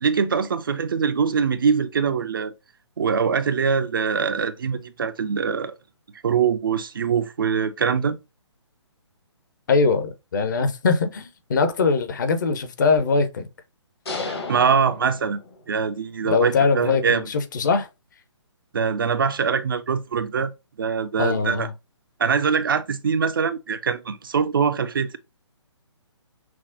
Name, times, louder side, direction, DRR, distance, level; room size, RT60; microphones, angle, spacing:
voice 1, 0.0-2.5 3.0-5.8 6.2-8.2 14.2-15.4 15.7-17.3 18.7-20.5 20.8-21.7 22.2-25.2, right 6 dB, 50° right, 0.4 m, -23 dB
voice 2, 9.7-13.5 16.2-17.9 21.2-21.7, left 4 dB, 40° left, 0.6 m, -22 dB
sound 1, 14.1-15.9, left 3 dB, 60° left, 1.1 m, -33 dB
5.8 x 2.0 x 2.4 m
figure-of-eight pair, 135°, 15 cm